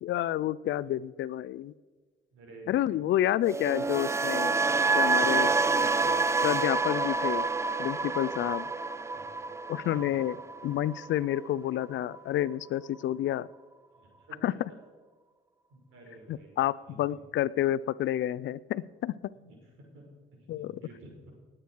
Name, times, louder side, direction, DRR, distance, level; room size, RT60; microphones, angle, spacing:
voice 1, 0.0-1.7 2.7-4.6 5.0-5.5 6.4-7.5 7.8-8.6 9.7-10.4 10.6-13.5 14.4-14.5 16.3-19.1 20.5-20.8, left 12 dB, 70° left, 19 dB, 0.5 m, -29 dB
voice 2, 2.3-2.8 3.5-3.6 8.3-8.4 9.1-9.3 9.8-10.2 13.9-14.6 15.7-16.6 16.9-17.0 19.3-20.0 20.5-21.1, right 2 dB, 85° right, 0 dB, 5.1 m, -51 dB
sound 1, 3.4-11.5 11.8-12.2, right 3 dB, 15° right, 0.4 m, -28 dB
18.5 x 8.8 x 4.6 m, 1.4 s
cardioid pair, 90°, 20 cm